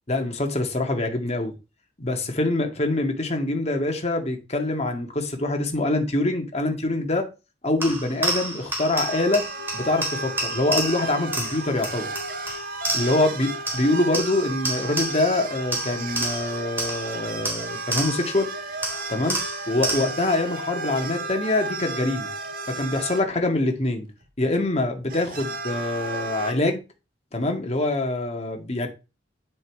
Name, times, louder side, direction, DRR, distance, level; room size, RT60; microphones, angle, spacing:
voice 1, 0.1-1.5 2.0-7.2 7.6-9.5 9.7-12.1 12.9-18.5 19.1-19.4 19.7-22.3 22.7-24.1 24.4-26.8 27.3-28.9, left 2 dB, 35° left, 2.0 m, -25 dB
sound 1, 7.8-13.4 13.7-15.4 15.7-18.4 18.8-20.3, right 2 dB, 10° right, 3.7 m, -30 dB
sound 2, 8.9-23.2 24.2-24.3 25.0-26.5, right 3 dB, 50° right, 1.7 m, -34 dB
10.0 x 5.3 x 4.7 m
head